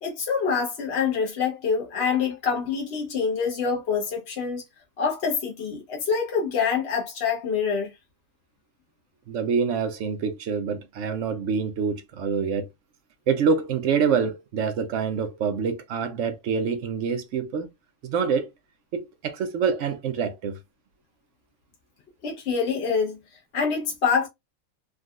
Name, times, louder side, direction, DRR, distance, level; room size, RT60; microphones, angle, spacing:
voice 1, 0.0-4.6 5.0-7.9 22.2-23.2 23.5-24.3, left 6 dB, 55° left, 1.1 m, -26 dB
voice 2, 9.3-12.7 13.3-17.7 18.0-18.5 18.9-20.6, right 6 dB, 65° right, 0.9 m, -26 dB
3.6 x 2.3 x 2.3 m
omnidirectional pair, 1.5 m